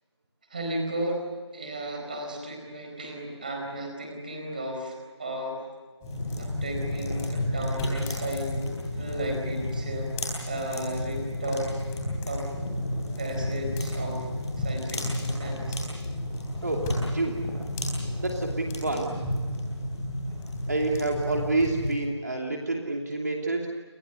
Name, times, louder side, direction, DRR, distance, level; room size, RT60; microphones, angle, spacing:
voice 1, 0.5-5.6 6.1-8.6 9.0-11.7 12.2-12.5 13.2-14.3 14.6-15.8, right 1 dB, 20° right, 2 dB, 4.4 m, -34 dB
sound 1, 6.0-21.9, left 1 dB, 5° left, 5.2 m, -31 dB
voice 2, 16.6-17.5 18.2-19.1 20.7-23.8, right 2 dB, 40° right, 1 dB, 2.8 m, -28 dB
30.0 x 26.0 x 6.8 m, 1.5 s
figure-of-eight pair, 175°, 15 cm